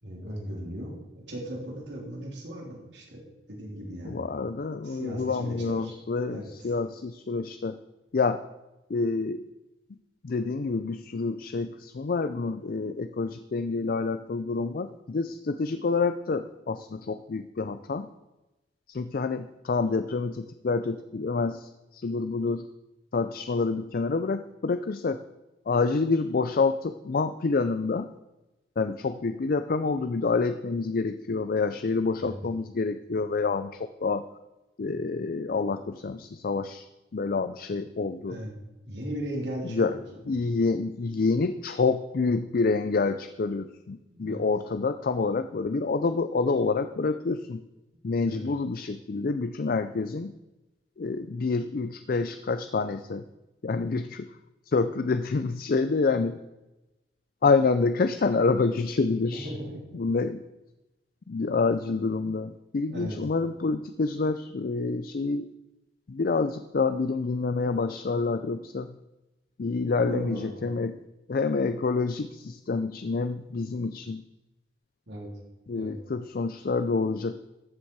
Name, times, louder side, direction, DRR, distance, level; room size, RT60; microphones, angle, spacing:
voice 1, 0.0-4.3 4.8-5.9 6.3-6.5 32.2-32.4 38.3-38.5 38.8-40.0 40.3-40.6 44.1-44.5 48.2-48.4 59.3-60.0 62.9-63.2 70.0-70.6 75.1-75.3 75.7-75.9, equal, 85° right, -1 dB, 3.4 m, -37 dB
voice 2, 4.1-7.8 8.1-8.4 8.9-9.5 10.2-18.1 18.9-22.6 23.1-25.2 25.7-28.1 28.8-34.3 34.8-36.9 37.1-38.4 39.6-40.0 40.3-47.6 48.0-50.3 51.0-53.2 53.6-54.3 54.7-56.4 57.4-59.5 59.9-60.4 61.3-65.5 66.1-68.9 69.6-71.0 71.3-74.2 75.7-77.4, left 4 dB, 55° left, 11 dB, 0.4 m, -27 dB
14.0 x 7.2 x 4.7 m, 1.0 s
head